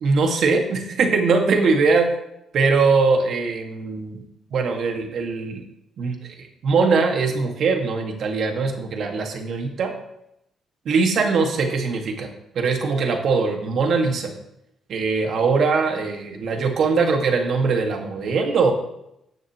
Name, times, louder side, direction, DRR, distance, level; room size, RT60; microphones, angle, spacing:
voice 1, 0.0-2.1 2.5-4.2 4.5-5.6 6.0-9.9 10.9-12.3 12.5-14.3 14.9-18.7, right 4 dB, 65° right, 3 dB, 1.9 m, -21 dB
17.5 x 6.5 x 3.1 m, 0.81 s
cardioid pair, 90°, 0 cm